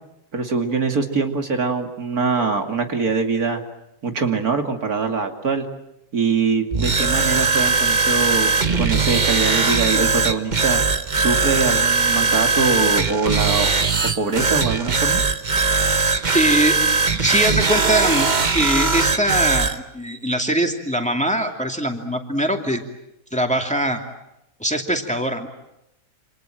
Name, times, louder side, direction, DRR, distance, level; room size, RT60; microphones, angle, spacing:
voice 1, 0.3-3.6 4.0-5.7 6.1-10.8 11.1-13.7 14.0-15.2, right 4 dB, 80° right, 5 dB, 3.0 m, -23 dB
sound 1, 6.7-19.8, right 4 dB, 30° right, 1.3 m, -20 dB
voice 2, 16.3-16.7 17.1-18.3 18.5-22.8 23.3-24.0 24.6-25.5, right 1 dB, 5° left, 3 dB, 2.6 m, -22 dB
28.5 x 27.0 x 7.7 m, 0.87 s
omnidirectional pair, 1.6 m